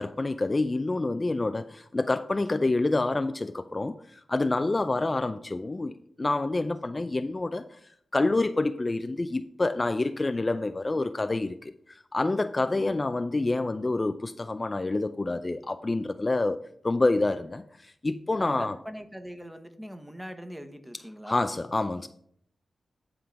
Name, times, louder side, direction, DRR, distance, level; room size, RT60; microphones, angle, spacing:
voice 1, 0.0-7.8 8.1-18.8 21.3-22.1, left 2 dB, 35° left, 0.4 m, -28 dB
voice 2, 12.7-13.0 18.4-21.5, equal, 5° right, 1.0 m, -41 dB
10.0 x 3.7 x 5.7 m
cardioid pair, 45°, 0 cm